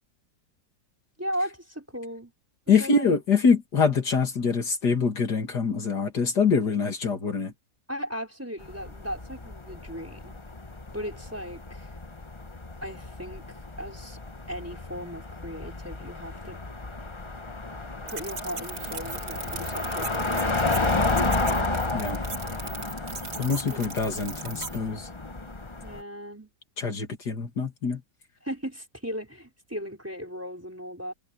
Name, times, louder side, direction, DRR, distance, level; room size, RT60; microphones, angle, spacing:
voice 1, 1.2-2.3 2.8-3.2 7.9-10.4 10.9-11.9 12.8-13.4 13.8-14.2 14.5-16.6 18.0-20.9 21.1-21.7 23.7-24.3 25.8-26.5 28.4-31.1, equal, 10° right, 4.6 m, -37 dB
voice 2, 2.7-7.5 21.9-22.2 23.4-25.1 26.8-28.0, left 5 dB, 65° left, 2.9 m, -24 dB
sound 1, 8.6-26.0, left 3 dB, 20° left, 1.0 m, -32 dB
sound 2, 18.1-24.8, right 5 dB, 70° right, 3.3 m, -39 dB
omnidirectional pair, 1.9 m